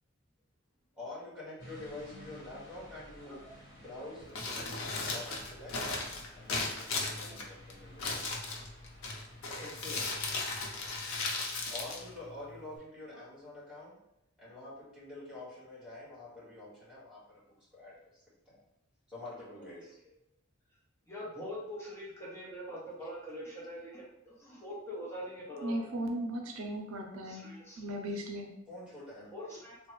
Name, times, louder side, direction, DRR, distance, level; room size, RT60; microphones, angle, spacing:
voice 1, 1.0-5.8 6.4-8.4 11.7-14.0 14.4-18.6 19.1-20.0 28.7-29.3, left 2 dB, 5° right, -7 dB, 1.5 m, -47 dB
sound 1, 1.6-11.2, equal, 55° left, 1.1 m, -55 dB
Crumpling crinkling, 4.2-12.8, left 3 dB, 85° left, 0.6 m, -37 dB
voice 2, 9.5-10.1 13.1-13.2 19.6-19.7 21.1-25.7 27.2-27.8 29.3-29.8, equal, 15° left, -6 dB, 0.6 m, -43 dB
voice 3, 25.6-27.5 27.8-28.5, right 1 dB, 85° right, 2 dB, 0.5 m, -36 dB
3.3 x 2.1 x 3.0 m, 0.84 s
head